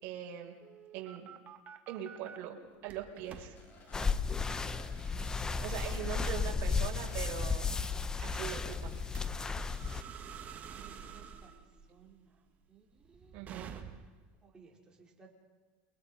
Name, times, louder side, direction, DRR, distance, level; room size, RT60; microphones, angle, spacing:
voice 1, 0.0-0.6 0.9-1.3 1.9-2.6 2.8-3.6 4.9-5.2 5.6-7.8 8.2-9.0 13.3-13.7, right 10 dB, 55° right, 1 dB, 4.8 m, -41 dB
sound 1, 0.6-2.4 2.9-3.5 4.0-4.2 4.6-4.8 5.2-14.3, right 7 dB, 30° right, 1.8 m, -50 dB
sound 2, 3.2-9.9, left 2 dB, 35° left, 5.0 m, -57 dB
sound 3, 3.9-10.0, left 5 dB, 15° left, 0.8 m, -34 dB
voice 2, 10.4-11.5 11.9-12.4 12.7-13.4 14.4-15.3, right 5 dB, 15° right, -2 dB, 4.9 m, -60 dB
29.0 x 22.5 x 5.8 m, 1.4 s
supercardioid pair, 145°, 5 cm